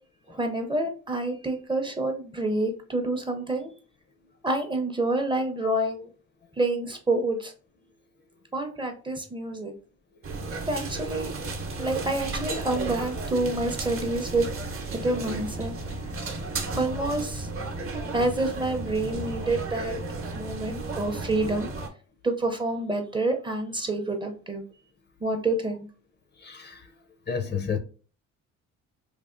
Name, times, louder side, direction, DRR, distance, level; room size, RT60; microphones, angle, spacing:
voice 1, 0.3-3.7 4.4-6.1 6.6-7.5 8.5-9.7 10.7-11.3 11.8-14.5 14.9-15.8 16.7-17.5 18.1-20.0 20.3-21.7 22.2-24.6 25.2-25.9, right 2 dB, 15° right, 0.5 m, -28 dB
sound 1, 10.2-21.9, right 3 dB, 45° right, 0.8 m, -34 dB
voice 2, 26.4-26.8 27.3-27.8, left 6 dB, 35° left, 0.4 m, -30 dB
3.3 x 2.3 x 2.4 m
cardioid pair, 90°, 30 cm